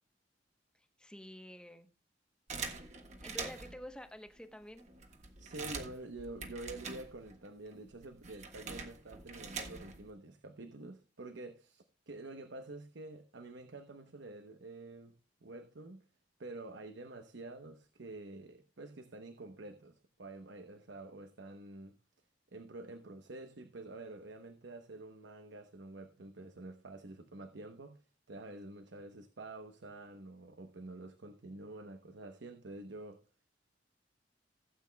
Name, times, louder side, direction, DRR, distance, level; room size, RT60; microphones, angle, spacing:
voice 1, 0.7-1.9 3.2-4.9, equal, 5° left, 0.9 m, -49 dB
sound 1, 2.5-3.9 4.5-4.6 4.8-7.5 7.7-10.1, right 4 dB, 40° right, 1.5 m, -44 dB
voice 2, 5.4-15.1 15.4-16.0 16.4-21.9 22.5-28.0 28.3-33.2, right 2 dB, 85° right, 0.9 m, -48 dB
16.5 x 8.4 x 2.2 m
head